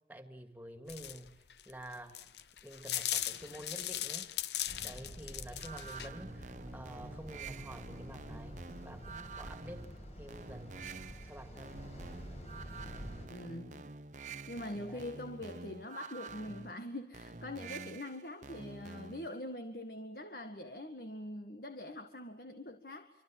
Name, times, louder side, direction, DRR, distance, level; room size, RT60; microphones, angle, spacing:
voice 1, 0.0-2.2 2.6-4.3 4.8-9.9 10.2-11.8 14.9-15.1, right 1 dB, 10° right, 7 dB, 2.6 m, -49 dB
sound 1, 0.9-6.1, left 12 dB, 75° left, 0.9 m, -38 dB
sound 2, 4.7-13.3, equal, 40° left, 5.4 m, -48 dB
sound 3, 5.6-19.4, right 4 dB, 45° right, 0.9 m, -48 dB
voice 2, 13.3-13.8 14.5-23.2, left 1 dB, 55° left, 7 dB, 1.8 m, -43 dB
26.5 x 26.0 x 7.7 m, 0.87 s
head